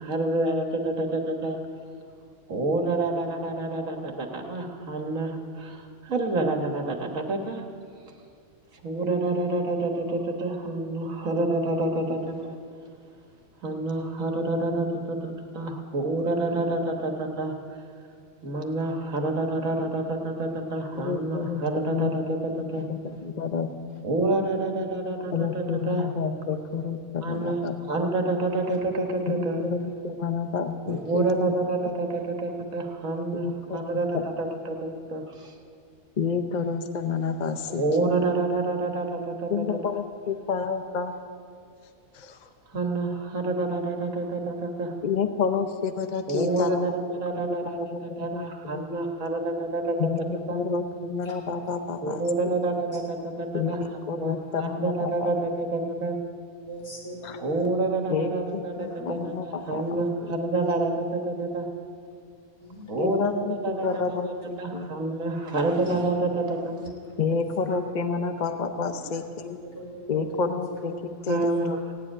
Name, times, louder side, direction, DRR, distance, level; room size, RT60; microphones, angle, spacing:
voice 1, 0.0-1.6 2.5-7.6 8.8-12.5 13.6-17.5 18.4-22.4 22.7-22.8 24.0-26.1 27.2-29.6 30.9-33.5 33.7-35.5 37.7-39.6 42.7-44.9 46.3-50.1 50.5-50.6 52.0-53.8 54.1-56.2 57.4-61.7 62.9-64.2 64.6-66.9 71.3-71.7, right 2 dB, 70° right, 3 dB, 1.8 m, -28 dB
voice 2, 20.9-22.4 22.9-24.0 25.3-27.8 29.3-31.4 33.4-34.0 36.2-38.1 39.5-41.2 42.1-42.5 45.0-48.5 48.7-48.8 50.0-52.5 53.5-55.3 57.2-57.4 58.1-60.3 63.0-64.9 67.2-69.6 70.1-71.8, left 5 dB, 40° left, 7 dB, 0.7 m, -30 dB
voice 3, 56.7-57.5 58.9-60.0 60.6-60.7 62.6-63.2 63.8-64.2 65.5-65.9 67.3-67.4 69.1-69.2 69.6-70.5 71.1-71.4, equal, 80° left, -4 dB, 3.8 m, -42 dB
16.5 x 7.8 x 9.8 m, 2.3 s
omnidirectional pair, 1.5 m